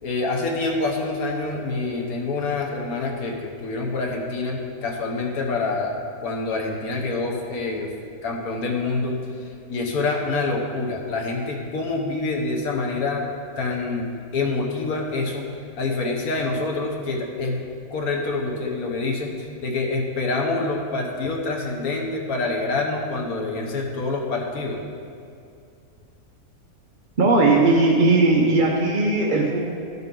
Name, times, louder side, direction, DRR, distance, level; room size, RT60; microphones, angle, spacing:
voice 1, 0.0-5.9 6.2-7.9 8.2-9.2 9.7-13.2 13.6-15.5 15.8-17.6 17.9-24.8, left 3 dB, 80° left, 1 dB, 1.5 m, -26 dB
voice 2, 27.2-29.7, right 2 dB, 40° right, -2 dB, 0.9 m, -18 dB
14.0 x 5.8 x 3.7 m, 2.5 s
omnidirectional pair, 1.5 m